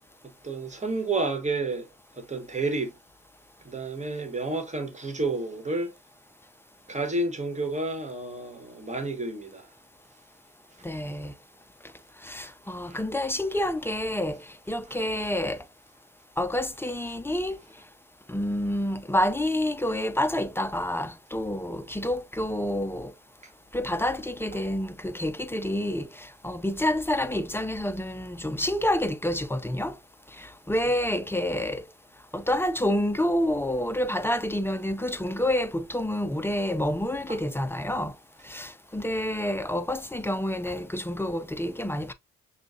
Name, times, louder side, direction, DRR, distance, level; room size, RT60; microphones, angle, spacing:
voice 1, 0.4-1.9 2.2-2.9 3.6-5.9 6.9-9.7 12.9-13.0 14.9-15.0 30.9-31.0 37.3-37.4 39.0-39.1, right 2 dB, 20° right, 1.3 m, -30 dB
voice 2, 10.8-11.3 12.2-15.6 16.4-17.6 18.3-23.1 23.7-30.0 30.4-31.8 32.3-38.1 38.4-42.1, left 1 dB, 5° left, 0.4 m, -28 dB
6.2 x 2.3 x 2.6 m
supercardioid pair, 70°, 33 cm